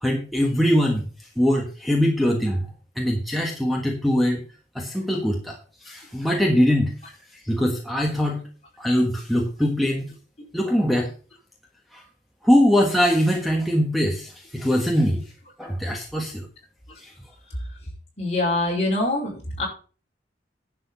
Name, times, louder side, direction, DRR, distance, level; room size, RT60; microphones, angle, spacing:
voice 1, 0.0-1.0 1.4-2.7 3.0-4.4 4.7-5.6 5.8-6.9 7.4-8.4 8.8-10.1 10.5-11.1 12.4-15.2 15.6-16.5 17.0-17.1, equal, ahead, 1 dB, 1.4 m, -22 dB
voice 2, 18.2-19.7, left 2 dB, 35° left, -2 dB, 5.2 m, -24 dB
11.0 x 6.9 x 5.6 m, 0.38 s
head